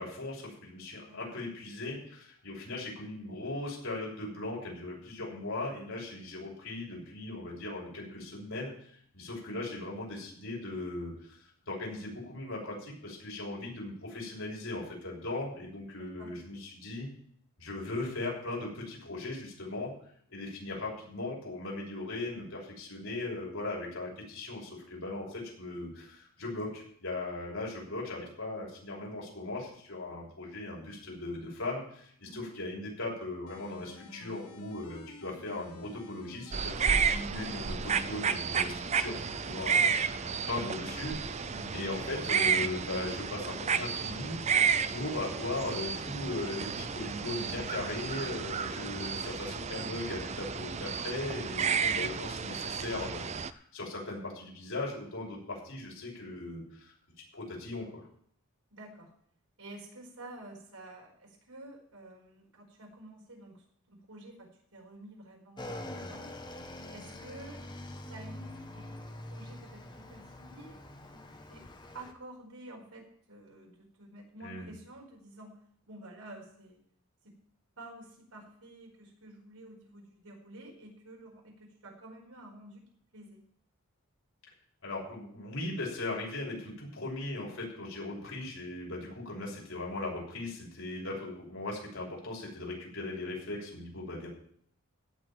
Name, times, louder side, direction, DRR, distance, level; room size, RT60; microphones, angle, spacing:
voice 1, 0.0-17.1 17.6-19.9 20.3-39.2 39.4-41.1 41.7-44.4 44.9-56.9 57.3-58.1 74.4-74.7 84.8-94.3, left 2 dB, 70° left, -3 dB, 6.4 m, -38 dB
voice 2, 1.1-1.4 16.0-16.4 32.2-32.5 41.5-41.8 58.7-59.1 59.6-66.3 66.9-67.6 68.1-68.9 69.2-70.8 71.1-71.7 71.9-75.6 75.9-76.8 77.2-77.3 77.8-82.8 83.1-83.4, right 1 dB, 90° right, 0 dB, 4.8 m, -50 dB
sound 1, 33.5-49.5, left 2 dB, 85° left, 1.6 m, -51 dB
sound 2, 36.5-53.5, right 6 dB, 30° right, 0.5 m, -32 dB
Motorcycle / Engine, 65.6-72.1, left 1 dB, 20° left, 1.1 m, -45 dB
16.0 x 5.6 x 9.2 m, 0.63 s
head